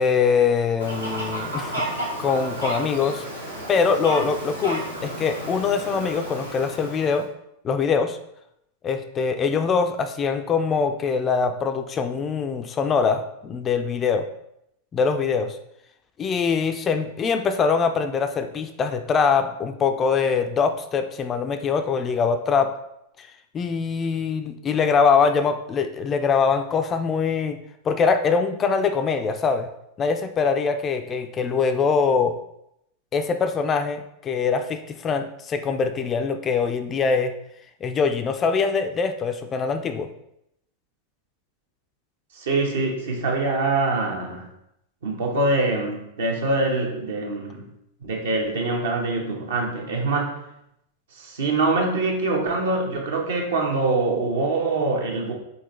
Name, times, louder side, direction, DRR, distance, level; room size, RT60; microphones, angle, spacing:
voice 1, 0.0-1.7 2.2-3.2 3.7-7.3 7.6-8.2 8.8-14.3 14.9-15.6 16.2-22.7 23.2-23.3 23.5-27.6 27.8-29.7 30.0-32.4 33.1-37.3 37.8-40.1, left 5 dB, 25° left, 8 dB, 0.4 m, -23 dB
Fowl, 0.8-7.2, right 1 dB, 90° right, 1.2 m, -32 dB
voice 2, 42.4-44.5 45.0-47.6 48.0-50.4 51.2-55.3, right 2 dB, 60° right, 0 dB, 1.0 m, -24 dB
4.0 x 4.0 x 3.1 m, 0.79 s
figure-of-eight pair, 90°, 0 cm